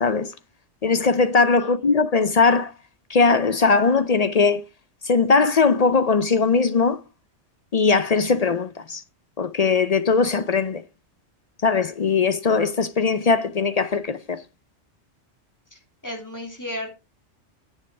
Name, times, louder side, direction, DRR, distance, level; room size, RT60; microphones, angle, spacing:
voice 1, 0.0-0.3 0.8-2.7 3.1-4.6 5.0-7.0 7.7-9.0 9.4-10.8 11.6-14.4, left 4 dB, 45° left, 0.5 m, -20 dB
voice 2, 15.7-16.9, left 1 dB, 15° left, 3.2 m, -34 dB
10.0 x 7.3 x 4.7 m
omnidirectional pair, 1.2 m